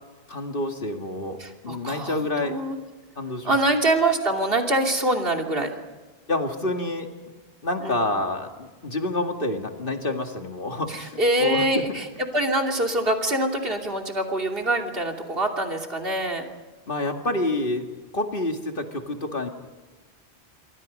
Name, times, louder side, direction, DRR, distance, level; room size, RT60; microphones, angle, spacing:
voice 1, 0.3-1.4 1.6-2.6 3.2-3.6 6.3-7.1 7.6-12.0 16.9-17.9 18.1-19.5, left 2 dB, 55° left, 4 dB, 2.3 m, -28 dB
voice 2, 1.4-2.8 3.4-5.7 7.8-8.0 10.9-16.5, right 1 dB, 60° right, 2 dB, 3.2 m, -24 dB
27.5 x 24.0 x 5.4 m, 1.3 s
omnidirectional pair, 1.1 m